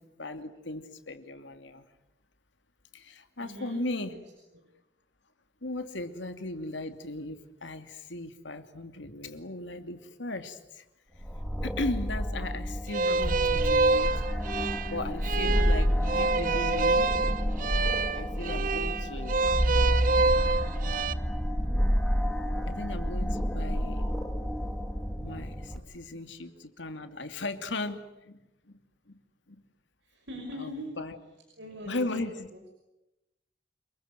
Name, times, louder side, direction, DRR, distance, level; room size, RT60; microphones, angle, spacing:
voice 1, 0.2-1.8 2.9-4.2 5.6-10.8 11.6-14.1 14.9-15.9 16.2-17.1 18.2-19.4 22.7-24.1 25.2-28.4 28.7-28.8 29.1-29.2 29.5-29.6 30.6-31.2 31.8-32.5, left 2 dB, 90° left, 8 dB, 2.7 m, -37 dB
voice 2, 3.4-4.2 25.7-25.8 30.0-30.9 31.6-32.2 32.5-32.6, equal, 80° right, 2 dB, 5.9 m, -42 dB
sound 1, 11.2-25.8, equal, ahead, 2.6 m, -29 dB
sound 2, 12.9-21.1, right 3 dB, 45° right, 0.9 m, -27 dB
29.0 x 21.5 x 9.3 m, 0.93 s
head